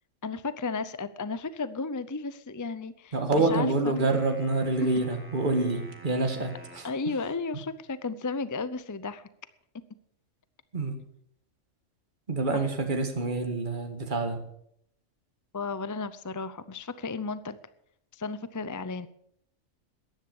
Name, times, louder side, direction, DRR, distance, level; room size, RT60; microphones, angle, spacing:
voice 1, 0.2-4.2 6.8-9.3 12.5-12.6 15.5-17.6 18.1-19.1, left 4 dB, 25° left, 14 dB, 0.4 m, -34 dB
voice 2, 3.1-6.9 10.7-11.0 12.3-14.4, right 2 dB, 40° right, 5 dB, 2.0 m, -27 dB
sound 1, 4.0-7.0, equal, 10° right, 2.7 m, -50 dB
14.0 x 10.5 x 7.1 m, 0.71 s
omnidirectional pair, 1.4 m